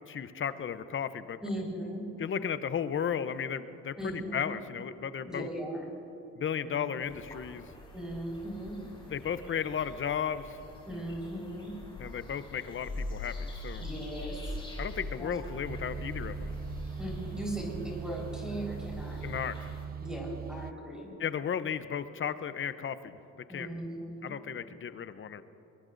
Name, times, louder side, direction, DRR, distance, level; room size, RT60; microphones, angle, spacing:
voice 1, 0.1-1.4 2.2-5.5 6.4-7.6 9.1-10.6 12.0-13.9 14.8-16.5 19.2-19.7 21.2-23.2 23.5-23.7 24.2-25.4, left 8 dB, 40° left, 13 dB, 0.7 m, -34 dB
voice 2, 1.4-2.1 4.0-4.5 5.3-5.9 6.6-7.0 7.9-8.8 10.9-11.8 13.8-14.5 15.2-15.7 17.0-19.2 20.0-21.1 23.5-24.4, right 1 dB, ahead, -3 dB, 4.4 m, -38 dB
sound 1, 7.0-19.9, left 1 dB, 15° left, 4.4 m, -43 dB
sound 2, 15.6-20.7, right 6 dB, 30° right, 0.4 m, -40 dB
22.5 x 21.5 x 2.6 m, 2.9 s
cardioid pair, 90°, 30 cm